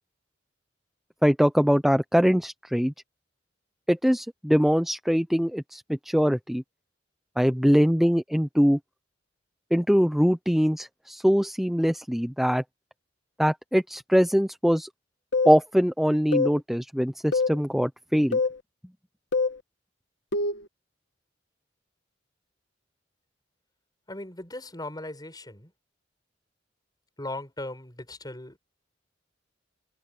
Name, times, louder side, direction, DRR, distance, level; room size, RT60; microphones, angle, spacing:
voice 1, 1.2-2.9 3.9-6.6 7.4-8.8 9.7-12.6 13.4-14.9 15.4-18.4, equal, ahead, 0.7 m, -22 dB
sound 1, 15.3-15.6 16.3-16.6 17.3-17.6 18.3-18.6 19.3-19.6 20.3-20.6, left 3 dB, 65° left, 1.5 m, -24 dB
voice 2, 24.1-25.7 27.2-28.6, left 1 dB, 20° left, 5.8 m, -38 dB
head